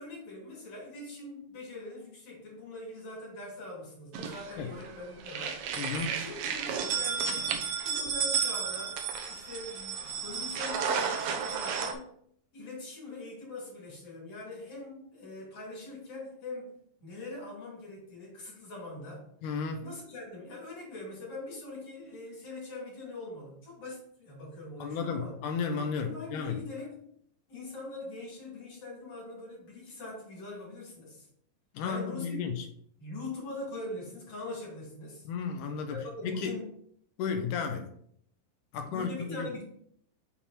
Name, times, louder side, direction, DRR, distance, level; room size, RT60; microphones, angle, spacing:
voice 1, 0.0-5.6 6.1-7.4 7.8-9.0 9.3-12.1 12.5-16.7 17.0-19.3 19.8-25.4 26.0-27.0 27.5-31.3 31.8-32.4 33.0-35.3 35.9-36.7 38.7-39.6, left 2 dB, 50° left, -4 dB, 4.2 m, -42 dB
sound 1, 4.1-4.9 5.2-11.9, right 7 dB, 80° right, 1.7 m, -32 dB
voice 2, 5.8-6.2 19.4-19.9 24.8-26.6 31.7-32.6 35.3-36.6 37.2-37.9 38.7-39.5, left 5 dB, 75° left, 6 dB, 1.9 m, -33 dB
7.1 x 4.4 x 4.3 m, 0.65 s
omnidirectional pair, 4.2 m